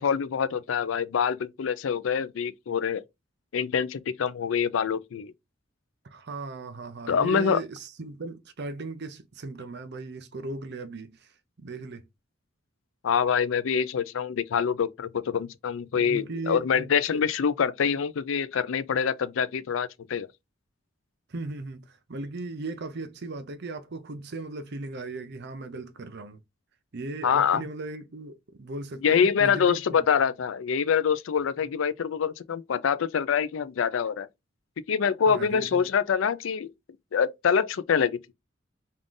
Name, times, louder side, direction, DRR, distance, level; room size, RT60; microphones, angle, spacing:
voice 1, 0.0-3.0 3.5-5.3 7.1-7.6 13.0-20.3 27.2-27.7 29.0-34.3 34.9-36.7 37.1-38.2, left 7 dB, 75° left, 0.4 m, -25 dB
voice 2, 6.0-11.3 11.6-12.0 15.9-17.3 21.3-26.4 26.9-30.1 35.3-35.9, right 2 dB, 60° right, 0.7 m, -37 dB
3.7 x 2.4 x 3.7 m
head